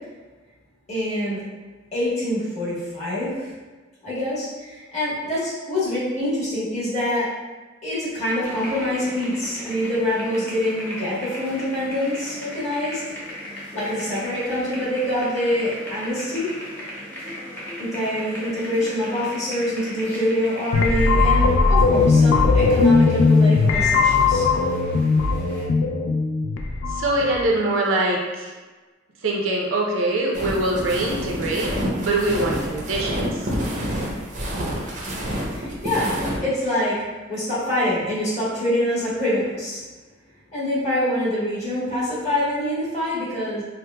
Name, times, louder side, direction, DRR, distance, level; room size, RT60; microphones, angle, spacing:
voice 1, 0.9-1.4 1.9-3.5 4.0-7.3 7.8-13.0 13.7-16.5 17.8-24.5 35.5-37.0 37.3-39.8 40.5-43.6, left 1 dB, 35° left, -9 dB, 1.3 m, -25 dB
sound 1, 8.4-25.7, equal, 10° left, 0.7 m, -37 dB
sound 2, 20.7-27.6, left 4 dB, 70° left, 0.3 m, -18 dB
voice 2, 26.9-28.5 29.2-33.5, right 2 dB, 80° right, -2 dB, 0.6 m, -23 dB
sound 3, 30.3-36.4, equal, 40° right, 0.6 m, -28 dB
4.6 x 2.1 x 2.2 m, 1.3 s
head